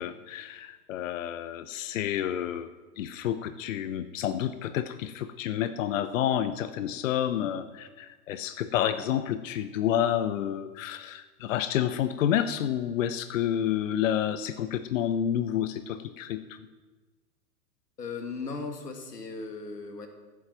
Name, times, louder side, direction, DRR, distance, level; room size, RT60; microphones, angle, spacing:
voice 1, 0.0-2.7 3.0-16.6, left 10 dB, 55° left, 12 dB, 0.8 m, -29 dB
voice 2, 18.0-20.1, left 4 dB, 80° left, 5 dB, 2.1 m, -37 dB
14.0 x 8.4 x 5.9 m, 1.3 s
figure-of-eight pair, 100°, 47 cm